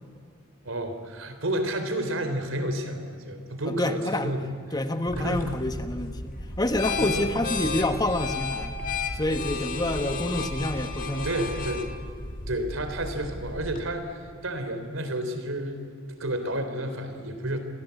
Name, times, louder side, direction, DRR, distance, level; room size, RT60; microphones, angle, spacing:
voice 1, 0.6-4.5 5.2-5.6 7.0-7.3 11.2-11.9 12.5-14.1 14.4-17.6, right 1 dB, 80° right, 7 dB, 3.7 m, -30 dB
voice 2, 3.6-4.4 4.7-8.8 9.1-11.3, left 1 dB, 20° left, 8 dB, 1.2 m, -28 dB
sound 1, 5.1-13.9, left 3 dB, 40° left, 2.4 m, -33 dB
29.5 x 22.5 x 8.4 m, 2.3 s
head